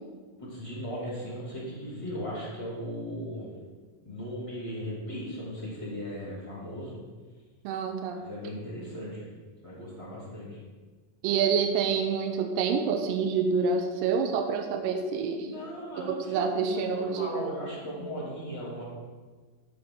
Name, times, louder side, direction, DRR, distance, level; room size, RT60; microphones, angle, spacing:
voice 1, 0.4-3.5 4.0-7.0 8.2-9.3 9.6-10.6 15.4-18.8, equal, 10° left, -8 dB, 2.3 m, -37 dB
voice 2, 7.6-8.2 11.2-15.5 16.0-17.6, right 5 dB, 90° right, 5 dB, 2.3 m, -27 dB
12.0 x 5.9 x 3.8 m, 1.4 s
omnidirectional pair, 4.0 m